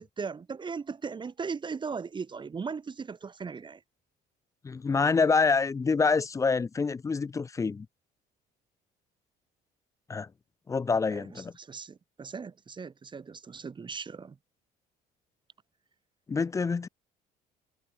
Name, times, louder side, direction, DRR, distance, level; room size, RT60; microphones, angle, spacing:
voice 1, 0.0-3.8 11.1-14.4, right 5 dB, 30° right, 1.4 m, -38 dB
voice 2, 4.6-7.9 10.1-10.3 10.7-11.5 16.3-16.9, left 4 dB, 20° left, 0.4 m, -26 dB
cardioid pair, 110°, 17 cm